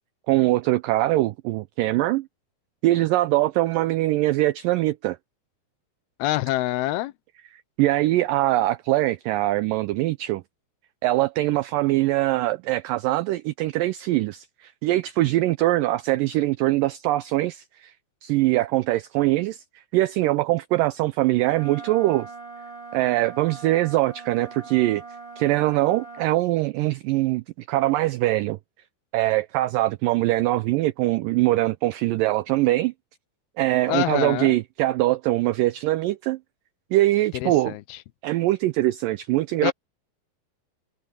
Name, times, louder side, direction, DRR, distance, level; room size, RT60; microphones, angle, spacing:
voice 1, 0.3-2.3 2.8-5.2 7.8-10.4 11.0-17.9 18.2-19.6 19.9-22.3 22.9-25.0 25.4-28.6 29.1-32.9 33.6-36.4 36.9-37.8 38.2-39.7, right 17 dB, 90° right, 1.9 m, -22 dB
voice 2, 6.2-7.1 33.9-34.6 37.3-38.0 39.6-39.7, left 16 dB, 85° left, 2.7 m, -26 dB
Wind instrument woodwind instrument, 21.4-26.3, right 4 dB, 10° right, 5.8 m, -41 dB
omnidirectional pair, 4.5 m